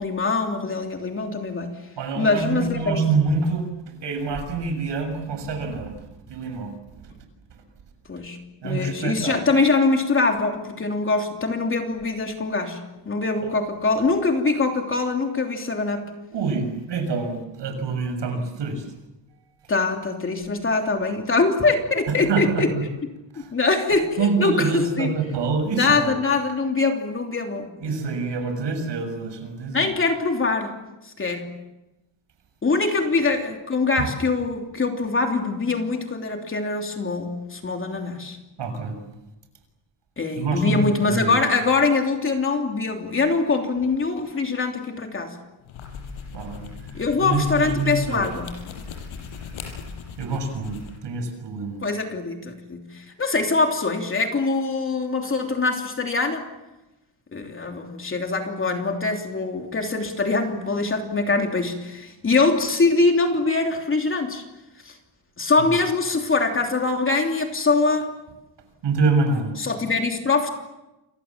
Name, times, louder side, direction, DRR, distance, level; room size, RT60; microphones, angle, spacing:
voice 1, 0.0-1.7 2.2-3.0 8.1-8.4 8.6-16.0 19.7-22.7 23.5-25.1 25.7-27.9 29.7-30.7 31.0-31.5 32.6-38.4 40.2-45.4 46.9-48.5 51.8-56.5 57.3-64.4 64.8-65.0 65.4-68.1 69.6-70.5, left 3 dB, 25° left, 3 dB, 3.1 m, -23 dB
voice 2, 2.0-3.7 4.0-7.0 8.6-9.4 13.4-13.5 16.3-18.8 22.3-22.8 23.3-23.5 24.2-26.2 27.8-29.9 38.6-39.0 40.4-41.4 46.3-46.7 47.2-48.2 50.2-51.8 68.8-69.5, right 4 dB, 60° right, 7 dB, 6.8 m, -26 dB
sound 1, 45.6-51.0, left 5 dB, 75° left, 6.8 m, -38 dB
29.5 x 25.0 x 7.4 m, 1.0 s
cardioid pair, 175°, 49 cm